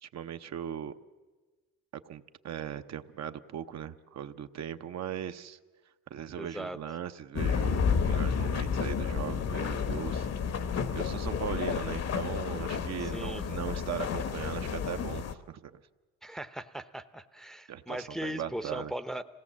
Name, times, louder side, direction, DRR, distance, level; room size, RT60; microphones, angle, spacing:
voice 1, 0.0-0.9 2.0-5.6 6.1-10.3 10.9-15.8 17.7-18.9, right 9 dB, 60° right, 8 dB, 0.8 m, -39 dB
voice 2, 6.4-6.8 13.0-13.4 16.2-19.2, right 1 dB, ahead, 10 dB, 0.7 m, -38 dB
sound 1, 7.4-15.3, left 6 dB, 55° left, 1.1 m, -31 dB
25.5 x 17.5 x 7.3 m, 1.3 s
cardioid pair, 90°, 30 cm